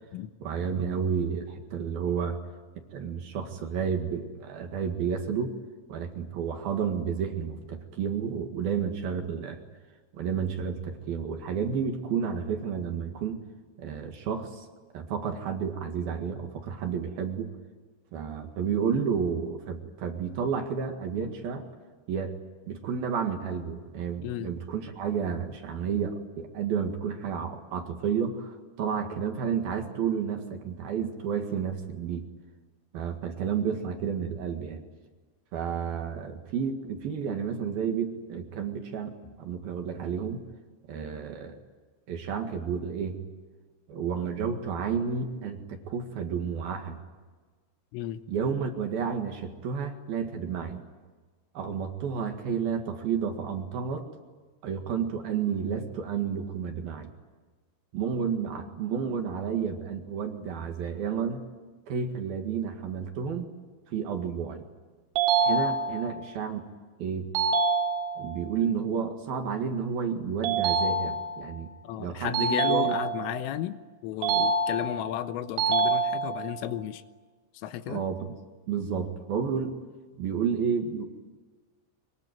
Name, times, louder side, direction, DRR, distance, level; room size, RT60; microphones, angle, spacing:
voice 1, 0.4-2.4 2.9-5.5 5.9-9.6 10.1-13.4 13.8-14.7 14.9-17.5 18.1-21.7 22.1-22.3 22.7-32.3 32.9-34.8 35.5-40.4 40.9-41.6 42.1-43.2 43.9-47.0 48.3-50.8 51.5-54.1 54.6-57.1 57.9-61.4 61.9-63.5 63.9-64.6 65.4-66.6 67.0-67.3 68.2-71.7 72.0-72.9 77.9-78.3 78.7-79.8 80.2-81.0, right 7 dB, 55° right, 4 dB, 3.3 m, -31 dB
voice 2, 24.2-24.5 47.9-48.2 71.8-77.0 77.6-78.0, left 12 dB, 90° left, 11 dB, 3.6 m, -34 dB
sound 1, 65.2-66.2 67.4-68.4 70.4-71.5 72.3-73.4 74.2-75.1 75.6-76.6, right 4 dB, 80° right, 4.7 m, -26 dB
24.0 x 22.5 x 9.5 m, 1.4 s
omnidirectional pair, 5.7 m